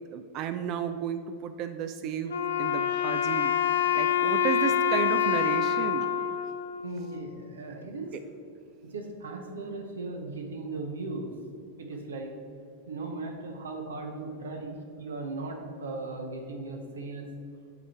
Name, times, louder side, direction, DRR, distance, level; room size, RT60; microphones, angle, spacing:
voice 1, 0.1-6.1, right 8 dB, 45° right, 9 dB, 0.4 m, -33 dB
Wind instrument woodwind instrument, 2.3-7.5, left 8 dB, 90° left, 0.5 m, -27 dB
voice 2, 6.8-8.1 8.8-11.3 11.8-12.3 12.9-17.3, right 3 dB, 85° right, 3 dB, 0.9 m, -37 dB
8.1 x 3.5 x 4.3 m, 2.5 s
hypercardioid pair, 100°, 0 cm